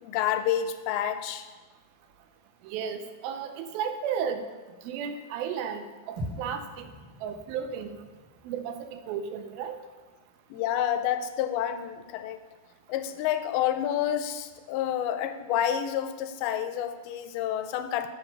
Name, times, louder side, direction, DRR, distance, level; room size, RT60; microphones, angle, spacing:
voice 1, 0.0-1.5 10.5-12.4 12.9-18.1, left 10 dB, 85° left, 9 dB, 2.4 m, -29 dB
voice 2, 2.6-4.4 4.8-6.9 7.2-8.0 8.5-9.8, right 7 dB, 80° right, 8 dB, 2.3 m, -34 dB
sound 1, 6.2-10.5, equal, 60° right, 3.3 m, -43 dB
7.6 x 3.8 x 6.4 m, 1.3 s
omnidirectional pair, 4.4 m